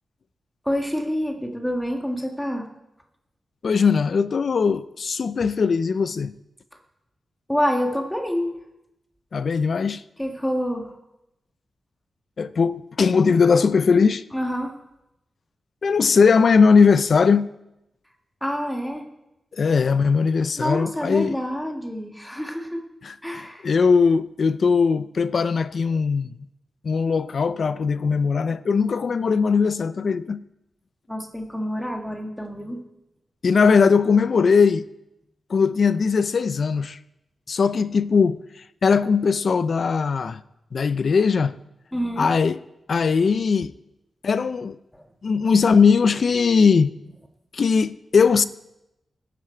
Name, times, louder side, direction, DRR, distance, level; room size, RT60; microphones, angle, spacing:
voice 1, 0.7-2.7 7.5-8.5 10.2-11.0 14.3-14.8 18.4-19.1 20.6-22.8 23.2-23.7 31.1-32.8 41.9-42.3 44.9-45.0, equal, 5° left, 1.7 m, -27 dB
voice 2, 3.6-6.3 9.3-10.0 12.4-14.2 15.8-17.5 19.5-21.4 23.0-23.1 23.6-26.3 26.8-30.4 33.4-34.9 35.5-37.0 37.5-38.4 38.8-40.4 40.7-41.6 42.2-42.6 42.9-43.7 44.2-44.8 45.2-46.9 47.5-48.4, left 5 dB, 55° left, 0.5 m, -19 dB
20.0 x 10.0 x 4.5 m
wide cardioid pair, 135°, 0 cm